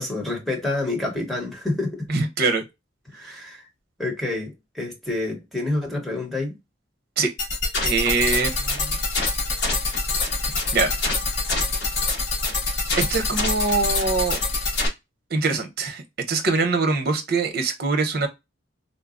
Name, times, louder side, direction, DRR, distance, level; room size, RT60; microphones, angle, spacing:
voice 1, 0.0-2.1 3.1-3.7 4.0-6.6, left 2 dB, ahead, 1.1 m, -28 dB
voice 2, 2.1-2.6 7.2-7.3 7.8-9.0 10.7-10.9 12.9-14.4 15.3-16.0 16.3-18.3, right 3 dB, 55° right, 0.8 m, -23 dB
sound 1, 7.4-14.9, left 3 dB, 65° left, 1.2 m, -25 dB
3.9 x 2.2 x 2.5 m
head